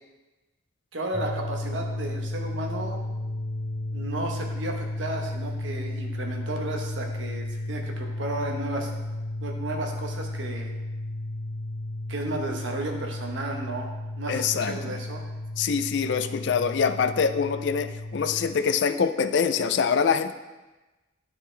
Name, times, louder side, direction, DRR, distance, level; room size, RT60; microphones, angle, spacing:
voice 1, 0.9-3.0 3.9-8.9 9.4-10.7 12.1-15.2, right 2 dB, 80° right, 1 dB, 1.1 m, -33 dB
sound 1, 1.1-18.5, left 1 dB, 20° left, 2.2 m, -33 dB
voice 2, 14.3-14.9 15.6-20.3, left 6 dB, 65° left, 10 dB, 0.4 m, -24 dB
9.5 x 4.9 x 3.3 m, 1.1 s
head